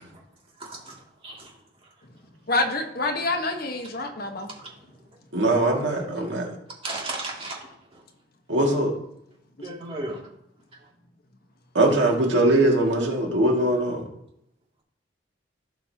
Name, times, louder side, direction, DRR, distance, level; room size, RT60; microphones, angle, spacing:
voice 1, 0.6-0.9 1.2-1.4 6.8-7.6 9.6-10.2, right 2 dB, 30° right, 2.5 m, -33 dB
voice 2, 2.5-4.5 9.6-9.8, left 2 dB, 55° left, 1.3 m, -27 dB
voice 3, 5.3-6.5 8.5-8.9 11.7-14.1, right 1 dB, 80° right, 2.3 m, -21 dB
16.5 x 5.8 x 2.9 m
head